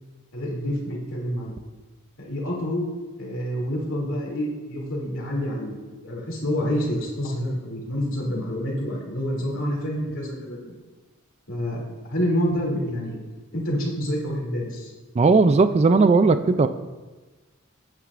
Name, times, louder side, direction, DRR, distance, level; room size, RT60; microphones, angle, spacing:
voice 1, 0.3-1.5 2.2-2.9 3.2-5.8 6.0-10.7 11.5-11.8 12.1-13.2 13.5-14.9, equal, 60° left, -2 dB, 2.7 m, -27 dB
voice 2, 15.2-16.7, right 4 dB, 30° right, 10 dB, 0.3 m, -17 dB
14.0 x 9.1 x 2.5 m, 1.3 s
head